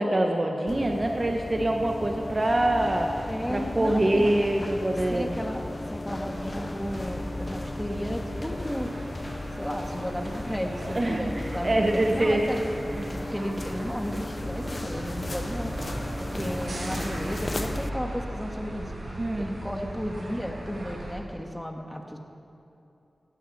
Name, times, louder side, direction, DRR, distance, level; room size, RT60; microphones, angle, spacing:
voice 1, 0.0-3.1 3.5-5.4 10.9-12.5 12.9-13.2 19.2-19.5, right 1 dB, 40° right, 2 dB, 1.2 m, -25 dB
sound 1, 0.7-17.9, left 2 dB, 35° left, 0.6 m, -35 dB
voice 2, 3.3-4.3 5.1-5.6 5.9-8.9 9.6-12.9 13.3-15.7 16.2-18.9 19.4-22.2, equal, 5° left, 3 dB, 1.8 m, -34 dB
sound 2, 6.2-21.1, right 1 dB, 70° right, 4.0 m, -38 dB
16.5 x 15.5 x 4.3 m, 2.8 s
cardioid pair, 45°, 0 cm